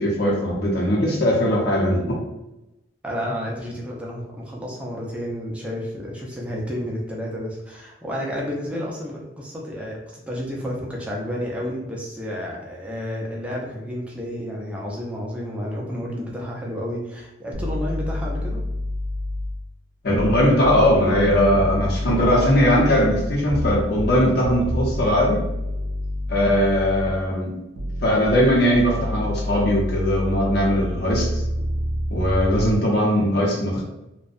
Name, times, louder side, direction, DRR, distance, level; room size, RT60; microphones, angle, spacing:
voice 1, 0.0-2.2 20.0-25.5 26.3-27.6 28.0-31.4 32.1-33.8, equal, 55° left, -3 dB, 0.7 m, -20 dB
voice 2, 3.0-18.6, equal, 5° right, -3 dB, 0.4 m, -31 dB
sound 1, 17.5-19.7 20.1-27.3 27.8-32.8, left 1 dB, 65° right, 0.4 m, -28 dB
2.6 x 2.1 x 2.4 m, 0.95 s
head